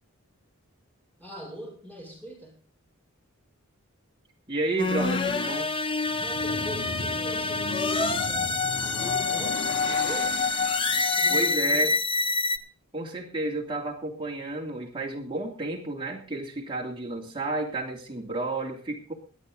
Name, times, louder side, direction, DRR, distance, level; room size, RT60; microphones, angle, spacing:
voice 1, 1.2-2.6 6.1-10.5 11.1-12.0, equal, 10° left, -3 dB, 5.9 m, -41 dB
voice 2, 4.5-5.7 11.3-11.9 12.9-19.1, right 2 dB, 25° right, -1 dB, 3.1 m, -31 dB
sound 1, 4.8-12.6, left 3 dB, 25° left, 0.8 m, -26 dB
sound 2, 6.0-11.4, left 2 dB, 80° left, 2.7 m, -38 dB
23.5 x 8.5 x 3.9 m, 0.38 s
head